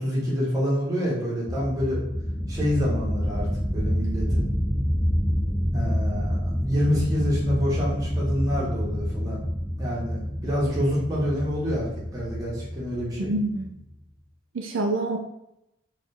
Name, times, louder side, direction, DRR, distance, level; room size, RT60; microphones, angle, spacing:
voice 1, 0.0-2.0 2.5-4.4 5.7-9.4 9.8-13.3, equal, 15° right, -6 dB, 1.4 m, -27 dB
sound 1, 1.5-13.9, equal, ahead, 0.3 m, -28 dB
voice 2, 13.2-13.7 14.5-15.2, right 2 dB, 70° right, 2 dB, 0.5 m, -26 dB
4.1 x 3.2 x 3.4 m, 0.84 s
head